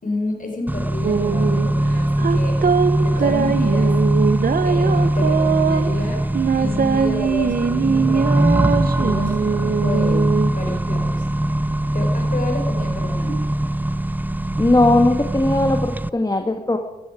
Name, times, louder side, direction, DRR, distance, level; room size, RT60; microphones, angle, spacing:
voice 1, 0.0-2.6 2.9-4.0 4.6-6.2 6.6-11.2 11.9-13.4, left 3 dB, 50° left, 2 dB, 4.7 m, -30 dB
Accelerating revving vroom, 0.7-16.1, right 1 dB, 10° right, 0.5 m, -21 dB
sound 1, 1.0-10.8, right 6 dB, 55° right, 0.9 m, -22 dB
voice 2, 14.6-16.8, left 2 dB, 20° left, 5 dB, 1.7 m, -18 dB
14.5 x 13.5 x 5.0 m, 1.1 s
supercardioid pair, 45°, 17 cm